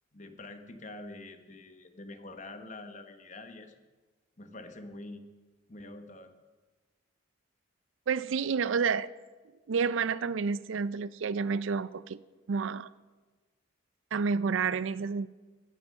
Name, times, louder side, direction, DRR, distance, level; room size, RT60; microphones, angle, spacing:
voice 1, 0.1-3.7 4.4-5.2 5.7-6.3, left 2 dB, 35° left, 8 dB, 1.0 m, -46 dB
voice 2, 8.1-9.1 9.7-12.2 12.5-12.9 14.1-15.3, right 5 dB, 75° right, 17 dB, 0.4 m, -29 dB
15.5 x 8.2 x 6.4 m, 1.3 s
head